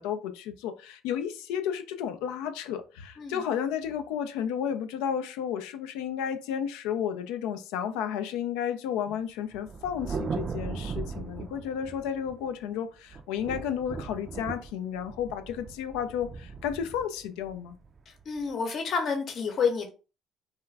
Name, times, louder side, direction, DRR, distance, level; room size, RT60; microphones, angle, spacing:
voice 1, 0.0-17.8, left 8 dB, 80° left, 0.3 m, -32 dB
Thunder, 9.5-12.6 13.1-18.4, right 5 dB, 45° right, 0.3 m, -38 dB
voice 2, 18.2-19.9, left 5 dB, 55° left, 0.8 m, -29 dB
2.4 x 2.2 x 3.2 m
hypercardioid pair, 65°, 0 cm